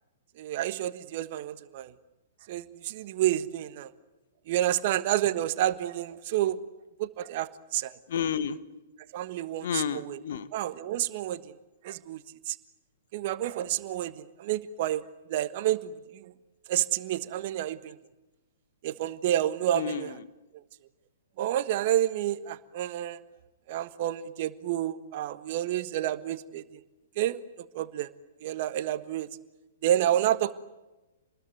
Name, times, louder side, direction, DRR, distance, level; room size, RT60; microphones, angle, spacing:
voice 1, 0.4-1.9 2.5-3.9 4.5-6.6 7.0-8.0 9.1-10.2 10.5-11.5 11.8-12.2 12.5-12.6 13.1-15.0 15.3-16.3 16.7-18.0 18.8-20.1 21.4-23.2 23.7-26.8 27.2-27.4 27.7-28.1 28.4-29.3 29.8-30.5, right 12 dB, 50° right, 12 dB, 1.4 m, -29 dB
voice 2, 8.1-8.6 9.6-10.5 19.7-20.1, left 8 dB, 60° left, 12 dB, 1.5 m, -31 dB
27.5 x 20.5 x 9.4 m, 1.1 s
figure-of-eight pair, 115°, 0 cm